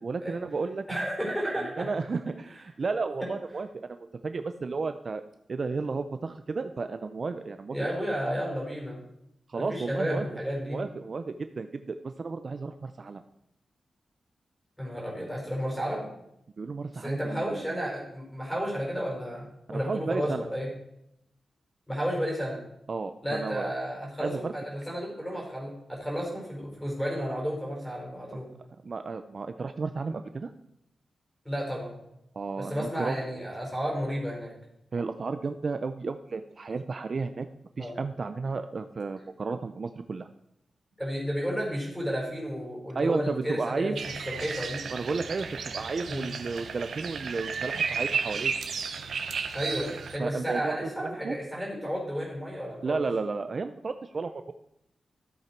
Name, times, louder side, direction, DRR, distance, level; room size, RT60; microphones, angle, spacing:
voice 1, 0.0-0.9 1.6-4.0 4.2-5.2 5.5-7.8 9.5-10.3 10.7-13.2 16.6-17.8 19.7-20.5 22.9-23.7 24.2-24.5 28.3-28.4 28.8-30.5 32.3-33.2 34.9-37.5 37.8-40.3 42.9-44.0 44.9-45.5 45.7-48.5 50.2-51.4 52.8-54.5, right 4 dB, 45° right, 9 dB, 0.5 m, -33 dB
voice 2, 0.9-1.9 7.7-9.0 9.5-10.8 14.8-16.1 17.0-20.7 21.9-22.6 23.2-28.5 31.4-32.0 32.6-34.5 37.8-38.0 41.0-44.8 46.0-46.3 49.5-53.0, equal, 5° left, -3 dB, 5.0 m, -32 dB
sound 1, 43.9-50.2, right 5 dB, 80° right, 1.0 m, -33 dB
14.0 x 7.9 x 4.6 m, 0.79 s
wide cardioid pair, 135°, 0 cm